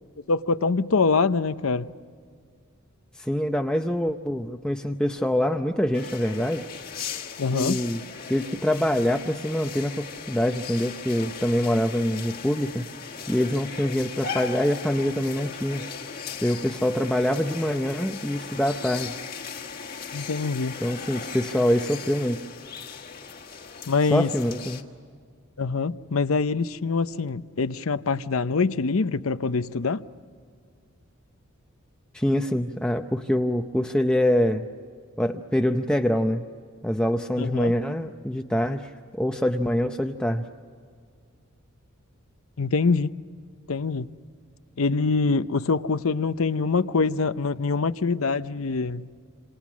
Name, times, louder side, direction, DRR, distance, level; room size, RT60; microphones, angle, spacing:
voice 1, 0.3-1.9 7.4-7.8 20.1-20.8 23.9-24.3 25.6-30.0 37.4-37.7 42.6-43.1 43.7-44.1 44.8-49.1, left 4 dB, 75° left, 0.7 m, -24 dB
voice 2, 3.1-6.7 7.5-8.0 8.3-12.8 13.3-15.8 16.4-19.2 20.8-22.4 24.1-24.8 32.1-34.7 35.2-36.4 36.8-40.5, equal, 5° left, 0.6 m, -25 dB
sound 1, 5.9-24.8, left 6 dB, 45° left, 1.5 m, -38 dB
28.0 x 27.5 x 6.2 m
head